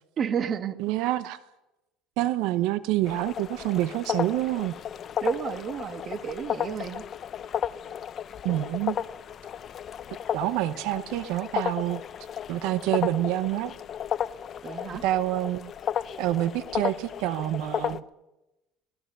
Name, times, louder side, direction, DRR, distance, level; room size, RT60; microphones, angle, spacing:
voice 1, 0.2-0.8 5.2-7.0 14.6-15.0, right 8 dB, 35° right, 9 dB, 1.5 m, -31 dB
voice 2, 0.8-1.4 2.2-4.7 8.4-9.0 10.3-12.0 12.5-13.7 15.0-15.7 16.2-18.0, right 15 dB, 70° right, 13 dB, 0.8 m, -27 dB
sound 1, 3.1-18.0, left 9 dB, 35° left, 0.7 m, -34 dB
26.0 x 18.0 x 6.7 m, 1.0 s
cardioid pair, 140°, 0 cm